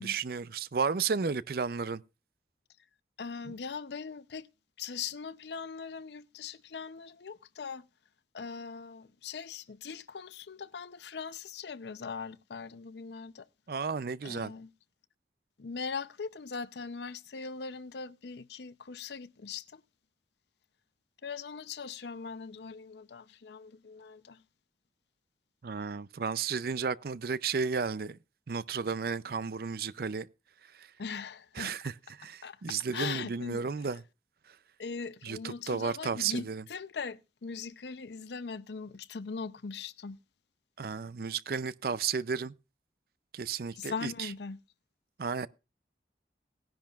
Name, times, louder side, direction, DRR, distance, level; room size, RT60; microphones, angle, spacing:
voice 1, 0.0-2.0 3.5-3.6 13.7-14.5 25.6-28.2 28.5-30.3 30.6-30.9 31.6-34.0 34.5-34.6 35.2-36.6 40.8-42.5 43.3-44.3 45.2-45.5, right 5 dB, 55° right, 0.5 m, -33 dB
voice 2, 3.2-4.5 4.8-7.9 8.3-13.5 14.2-14.7 15.6-19.8 21.2-24.4 31.0-31.7 32.4-32.6 32.9-33.6 34.8-40.2 43.7-44.6, left 5 dB, 75° left, 0.6 m, -40 dB
18.5 x 10.5 x 2.4 m
head